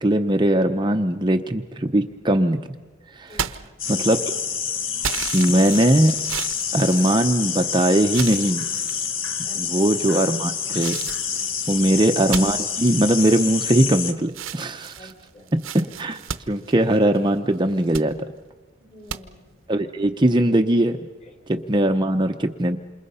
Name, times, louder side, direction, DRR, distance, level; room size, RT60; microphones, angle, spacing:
voice 1, 0.0-2.6 3.1-3.5 3.9-4.2 5.3-6.2 6.7-8.6 9.5-11.0 11.7-15.0 15.8-16.2 16.5-18.1 19.7-21.0 21.5-22.8, right 1 dB, 20° right, 5 dB, 0.7 m, -20 dB
voice 2, 3.3-3.7 9.4-10.0 11.6-12.0 15.0-15.6 18.8-19.6 21.2-21.4, equal, 30° left, 4 dB, 4.0 m, -47 dB
sound 1, 3.3-4.3 5.0-7.6 8.1-9.1 9.7-10.2 10.8-14.0 14.3-17.3 17.7-18.1 19.1-19.2, right 8 dB, 70° right, 0.9 m, -34 dB
sound 2, 3.8-14.1, left 7 dB, 65° left, 1.5 m, -27 dB
28.0 x 28.0 x 5.6 m, 1.2 s
head